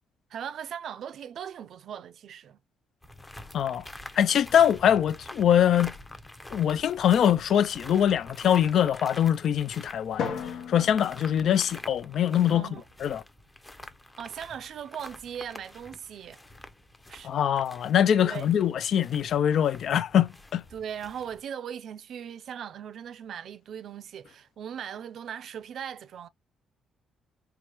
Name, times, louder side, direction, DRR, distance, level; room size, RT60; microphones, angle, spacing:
voice 1, 0.3-2.6 12.5-12.8 14.2-16.4 17.1-17.3 18.2-18.5 20.7-26.3, right 8 dB, 60° right, 0.4 m, -39 dB
sound 1, 3.0-21.4, left 1 dB, 15° left, 0.6 m, -47 dB
voice 2, 3.5-3.8 4.2-5.9 6.5-10.3 10.7-12.7 13.0-13.2 17.2-20.6, left 9 dB, 60° left, 0.3 m, -23 dB
Drum, 10.2-12.5, left 6 dB, 80° left, 0.9 m, -37 dB
4.7 x 2.2 x 2.9 m
cardioid pair, 120°, 0 cm